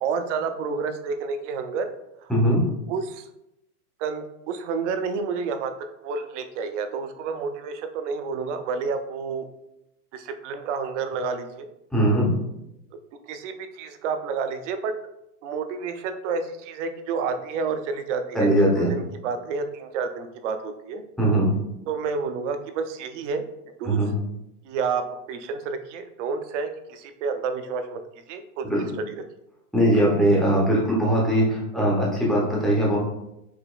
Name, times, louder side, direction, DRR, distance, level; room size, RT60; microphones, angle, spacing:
voice 1, 0.0-1.9 2.2-2.3 2.9-3.2 4.0-5.7 6.0-9.5 10.1-11.7 13.3-14.9 15.4-21.0 21.9-23.4 23.8-24.0 24.6-25.0 25.3-28.0 28.3-28.6 29.1-29.2, right 5 dB, 50° right, 8 dB, 0.5 m, -29 dB
voice 2, 2.3-2.6 11.9-12.3 18.3-18.9 21.2-21.5 23.8-24.1 28.6-28.9 29.7-33.0, right 1 dB, ahead, -5 dB, 0.4 m, -20 dB
4.9 x 2.9 x 2.3 m, 0.85 s
hypercardioid pair, 135°, 46 cm